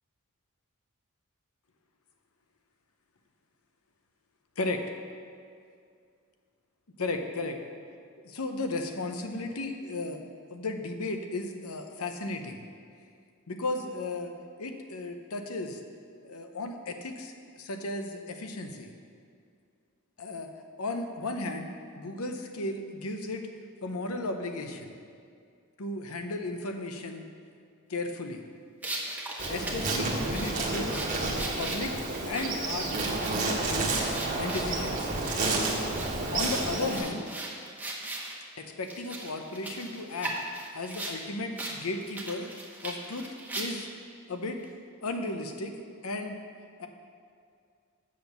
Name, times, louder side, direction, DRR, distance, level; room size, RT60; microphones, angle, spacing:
voice 1, 7.0-7.6 8.2-10.2 10.5-12.6 13.5-14.3 14.6-15.8 16.2-18.9 20.2-20.5 20.8-21.7 22.0-23.5 23.8-24.9 25.8-27.2 27.9-28.4 29.5-31.1 31.6-32.0 32.3-35.1 36.3-37.2 38.6-40.3 40.7-42.5 42.8-43.3 43.5-43.9 44.3-44.6 45.0-45.7 46.0-46.4 46.8-46.9, left 2 dB, 85° left, 5 dB, 0.8 m, -35 dB
sound 1, 28.8-38.4 38.9-41.2 41.6-41.8 42.1-44.0, right 1 dB, 10° right, 1.1 m, -39 dB
Insect, 29.4-37.0, right 2 dB, 40° right, 1.3 m, -30 dB
7.5 x 6.1 x 7.0 m, 2.3 s
head